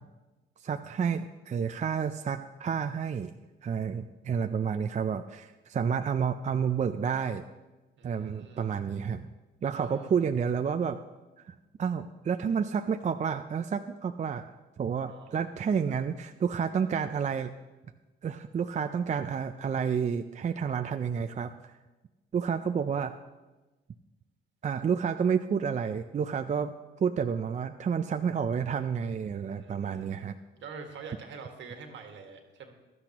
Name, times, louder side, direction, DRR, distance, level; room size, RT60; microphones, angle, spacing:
voice 1, 0.6-3.3 3.6-7.4 8.0-9.3 9.6-11.0 11.5-14.5 14.8-17.5 18.2-21.8 22.3-23.1 24.6-26.7 27.0-30.4, right 7 dB, 35° right, 8 dB, 0.5 m, -30 dB
voice 2, 8.0-8.8 9.7-10.3 15.0-15.4 29.6-30.3 30.5-32.7, right 5 dB, 70° right, 4 dB, 1.8 m, -46 dB
16.0 x 12.0 x 3.0 m, 1.1 s
cardioid pair, 90°, 20 cm